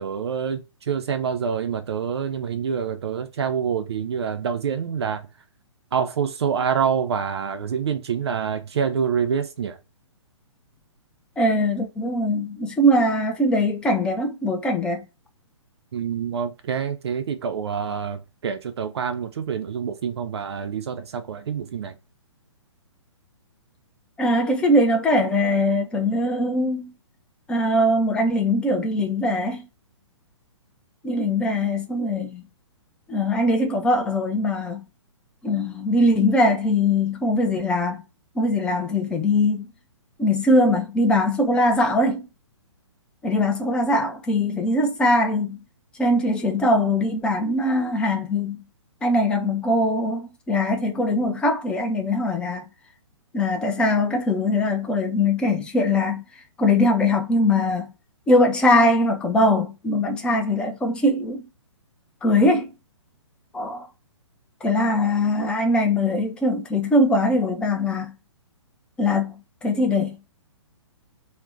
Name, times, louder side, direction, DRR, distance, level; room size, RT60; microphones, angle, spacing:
voice 1, 0.0-5.2 5.9-9.8 15.9-21.9, right 7 dB, 55° right, 0.4 m, -26 dB
voice 2, 11.4-15.0 24.2-26.9 27.5-29.7 31.0-32.4 33.1-34.8 35.4-38.0 38.4-39.7 40.2-42.3 43.2-45.6 46.0-48.6 49.0-52.6 53.3-56.2 56.6-57.9 58.3-61.4 62.2-62.7 63.5-63.9 64.6-68.1 69.0-69.3 69.6-70.2, left 1 dB, 5° left, 0.3 m, -21 dB
2.5 x 2.1 x 3.6 m
figure-of-eight pair, 125°, 16 cm